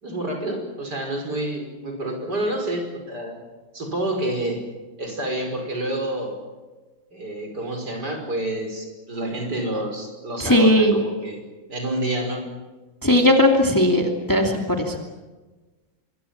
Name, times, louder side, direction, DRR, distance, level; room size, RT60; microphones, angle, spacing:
voice 1, 0.0-3.4 3.7-4.6 5.0-6.4 7.1-11.4 11.7-12.4, right 1 dB, 55° right, 4 dB, 6.0 m, -28 dB
voice 2, 10.4-11.0 13.0-15.0, left 1 dB, 10° left, 2 dB, 2.6 m, -18 dB
26.0 x 23.0 x 7.3 m, 1.2 s
omnidirectional pair, 2.1 m